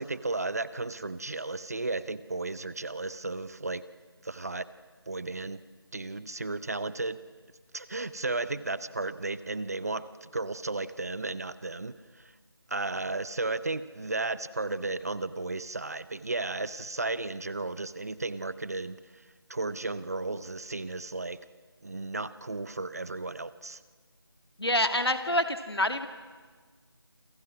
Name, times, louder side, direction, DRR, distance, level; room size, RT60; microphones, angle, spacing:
voice 1, 0.0-3.8 4.2-4.6 5.1-5.6 5.9-7.2 7.7-12.3 12.7-19.0 19.5-21.4 21.8-23.8, right 3 dB, 40° right, 16 dB, 0.8 m, -34 dB
voice 2, 24.6-26.1, left 1 dB, 80° left, 8 dB, 2.4 m, -27 dB
28.0 x 26.0 x 6.2 m, 1.4 s
figure-of-eight pair, 165°, 13 cm